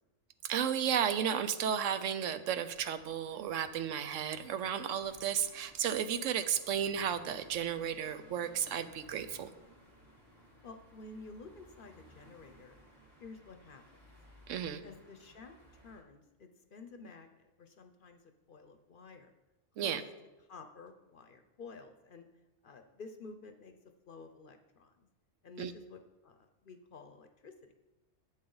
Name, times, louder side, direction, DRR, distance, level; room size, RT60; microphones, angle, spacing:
voice 1, 0.4-9.5 14.5-14.8 19.8-20.0 25.6-25.7, right 8 dB, 85° right, 11 dB, 1.0 m, -33 dB
sound 1, 2.6-16.0, equal, 45° right, 3.4 m, -60 dB
voice 2, 10.6-12.8 13.2-13.8 14.8-18.2 18.5-19.3 19.8-20.0 20.5-22.3 22.6-23.7 24.1-25.1 25.4-27.7, left 3 dB, 50° left, 7 dB, 0.8 m, -51 dB
11.0 x 8.2 x 3.9 m, 1.1 s
omnidirectional pair, 1.3 m